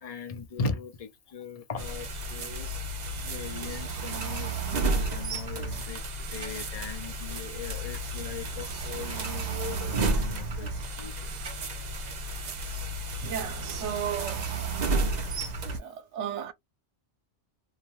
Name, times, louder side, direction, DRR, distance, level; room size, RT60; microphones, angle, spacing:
voice 1, 0.0-2.7 3.2-6.0 6.3-10.7 11.0-11.3, left 5 dB, 45° left, 0.5 m, -38 dB
sound 1, 1.8-15.8, right 2 dB, 50° right, 0.6 m, -32 dB
voice 2, 13.2-14.5 15.7-16.5, right 9 dB, 80° right, 0.9 m, -34 dB
2.7 x 2.2 x 2.9 m
omnidirectional pair, 1.2 m